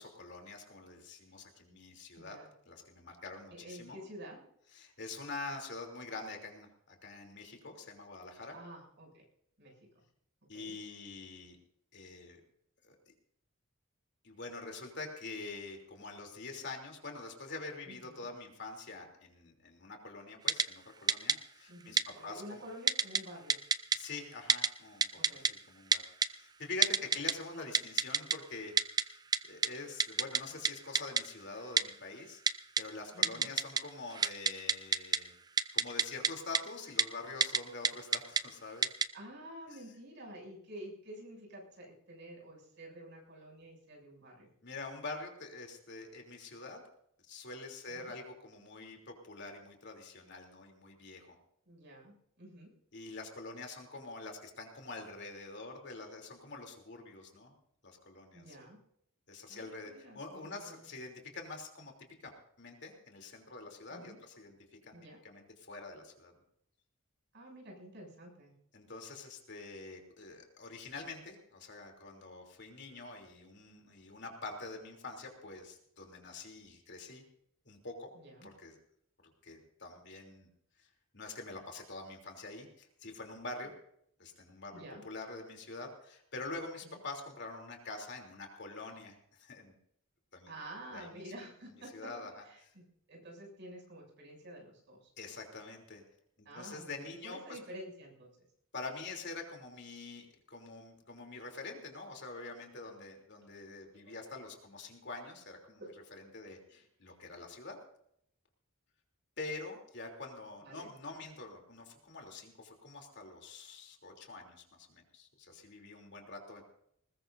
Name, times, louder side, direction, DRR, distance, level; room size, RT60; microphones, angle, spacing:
voice 1, 0.0-2.4 2.7-4.0 4.7-8.5 10.5-11.6 11.9-12.4 12.8-13.0 14.2-22.6 23.9-25.1 25.7-26.0 26.3-28.7 29.0-29.2 29.5-32.4 32.8-35.3 35.7-38.9 39.7-39.8 44.6-46.8 47.3-51.3 52.9-57.5 57.8-58.4 59.3-61.9 62.2-65.0 65.2-66.3 68.7-77.2 77.6-78.1 78.4-78.8 79.4-80.5 80.8-80.9 81.1-83.7 84.2-89.7 90.3-90.5 90.9-91.3 91.9-92.4 95.2-96.0 96.4-97.6 98.7-105.8 106.1-107.8 109.4-116.6, left 3 dB, 55° left, 2 dB, 3.2 m, -46 dB
voice 2, 2.2-2.5 3.5-4.5 8.5-9.2 9.6-10.0 10.5-10.8 17.9-18.3 21.7-23.6 25.1-25.5 27.0-27.1 33.1-33.5 39.1-44.5 47.9-48.1 51.7-52.7 58.3-58.8 59.5-60.8 63.9-64.2 64.9-65.2 67.3-68.5 78.1-78.5 84.7-85.0 86.8-87.0 90.5-92.1 92.4-95.1 96.5-98.5 103.5-103.6 103.9-104.2 105.8-106.0 106.4-106.8 110.6-110.9, right 1 dB, 60° right, -1 dB, 7.2 m, -50 dB
Typing, 20.5-20.6 21.1-21.3 22.0-22.1 22.9-23.2 23.5-24.0 24.5-24.7 25.0-25.5 25.9-26.3 26.8-27.3 27.7-28.3 28.8-29.0 29.3-29.4 29.6-29.7 30.0-30.4 30.6-30.7 30.9-31.2 31.8-31.9 32.5-32.8 33.2-33.8 34.1-35.2 35.6-36.3 36.5-36.6 37.0-37.1 37.4-37.6 37.8-38.4 38.8-39.0, right 5 dB, 20° right, 0.5 m, -27 dB
20.5 x 20.0 x 2.7 m, 0.71 s
head